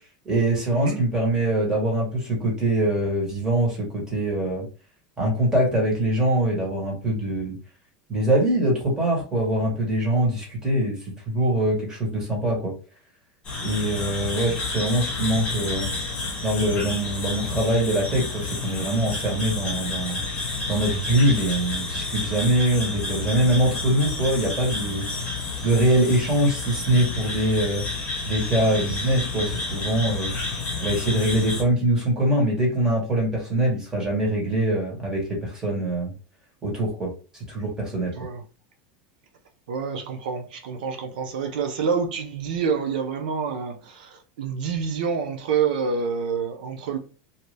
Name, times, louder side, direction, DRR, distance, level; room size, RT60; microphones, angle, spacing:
voice 1, 0.2-4.7 5.2-7.6 8.1-12.7 13.6-15.9 16.4-20.2 20.7-25.1 25.6-27.8 28.2-30.3 30.8-36.1 36.6-37.1 37.5-38.1, right 1 dB, 15° right, 1.6 m, -23 dB
sound 1, 13.4-31.6, left 3 dB, 25° left, 1.6 m, -30 dB
voice 2, 39.7-47.0, right 6 dB, 85° right, 0.7 m, -27 dB
2.7 x 2.6 x 3.2 m
supercardioid pair, 145°, 4 cm